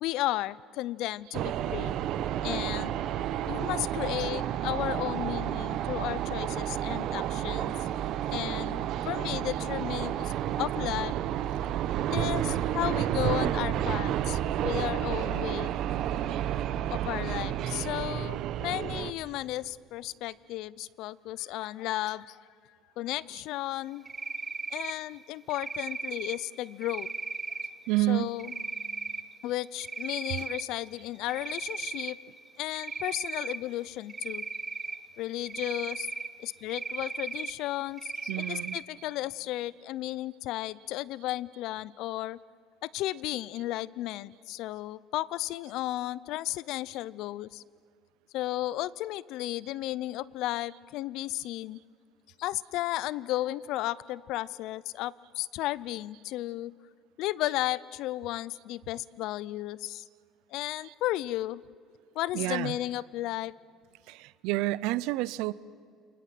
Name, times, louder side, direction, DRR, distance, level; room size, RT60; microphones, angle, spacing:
voice 1, 0.0-1.9 2.4-2.9 3.5-7.7 8.3-10.3 10.6-11.1 12.1-15.7 16.9-22.4 23.0-24.0 24.7-27.1 28.1-28.5 29.4-32.2 32.6-34.4 35.2-36.1 36.4-42.4 42.8-47.6 48.3-51.8 52.4-56.7 57.2-60.0 60.5-61.6 62.1-63.5, left 15 dB, 65° left, 21 dB, 0.5 m, -34 dB
sound 1, 1.3-19.1, right 11 dB, 60° right, 1.0 m, -31 dB
Cricket, 24.1-24.9 25.5-26.4 26.8-27.7 28.4-29.2 29.6-30.6 31.0-32.2 32.8-33.6 34.1-35.0 35.5-36.3 36.7-37.5 38.0-38.8, right 4 dB, 20° right, 1.3 m, -36 dB
voice 2, 27.9-28.3 30.4-30.5 38.3-38.8 60.8-60.9 62.3-62.8 64.1-65.5, right 17 dB, 80° right, 19 dB, 0.6 m, -29 dB
28.0 x 20.0 x 7.7 m, 2.2 s
cardioid pair, 130°, 0 cm